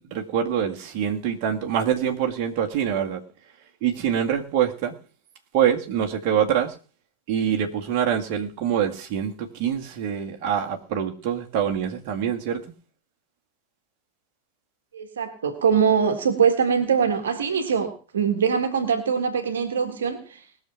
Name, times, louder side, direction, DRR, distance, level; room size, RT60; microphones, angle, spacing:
voice 1, 0.0-3.2 3.8-4.9 5.5-6.7 7.3-12.6, right 9 dB, 40° right, 1 dB, 1.9 m, -25 dB
voice 2, 14.9-20.4, right 6 dB, 65° right, 6 dB, 1.7 m, -23 dB
20.0 x 6.6 x 5.8 m, 0.38 s
figure-of-eight pair, 90°, 0 cm